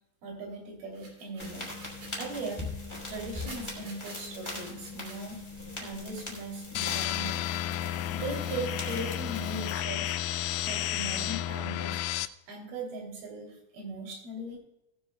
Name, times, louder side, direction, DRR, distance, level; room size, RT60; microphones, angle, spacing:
voice 1, 0.2-1.7 2.2-2.6 3.1-5.4 5.8-7.5 8.1-12.0 12.5-14.6, right 2 dB, 85° right, 1 dB, 4.8 m, -39 dB
sound 1, 0.9-2.3 3.1-5.2 8.1-9.3, right 3 dB, 65° right, 4.2 m, -50 dB
sound 2, 1.4-9.7, left 2 dB, 10° left, 2.7 m, -41 dB
sound 3, 6.8-12.3, left 13 dB, 80° left, 2.0 m, -32 dB
18.0 x 9.7 x 2.3 m, 0.86 s
omnidirectional pair, 4.2 m